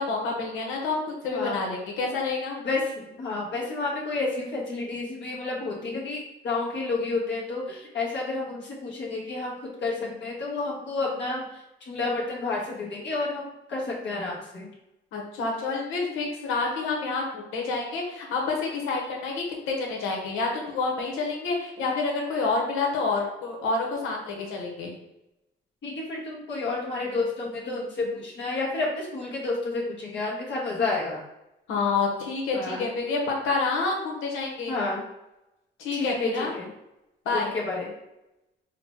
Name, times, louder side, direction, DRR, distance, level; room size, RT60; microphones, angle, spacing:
voice 1, 0.0-2.6 15.1-24.9 31.7-34.7 35.8-36.5 37.2-37.5, left 3 dB, 90° left, 0 dB, 1.1 m, -28 dB
voice 2, 1.3-1.6 2.6-9.5 9.8-11.4 11.9-14.7 25.8-31.2 32.5-32.8 34.7-35.0 35.9-36.7 37.3-37.9, left 3 dB, 65° left, -4 dB, 1.4 m, -30 dB
4.0 x 2.2 x 4.4 m, 0.91 s
cardioid pair, 90°, 20 cm